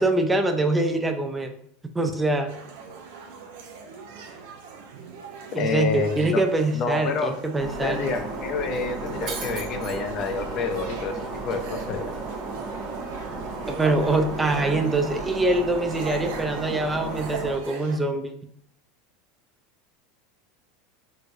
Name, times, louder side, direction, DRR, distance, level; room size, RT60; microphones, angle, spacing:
voice 1, 0.0-1.5 1.9-2.5 5.5-8.1 13.7-18.3, right 2 dB, 15° right, 5 dB, 0.4 m, -24 dB
sound 1, 2.5-18.0, right 5 dB, 70° right, 0.6 m, -41 dB
voice 2, 5.5-6.4 6.7-7.3 7.8-12.1, left 4 dB, 45° left, 6 dB, 0.5 m, -28 dB
Shatter, 7.6-17.6, right 3 dB, 50° right, 1.1 m, -34 dB
3.5 x 3.1 x 2.5 m, 0.71 s
hypercardioid pair, 90°, 0 cm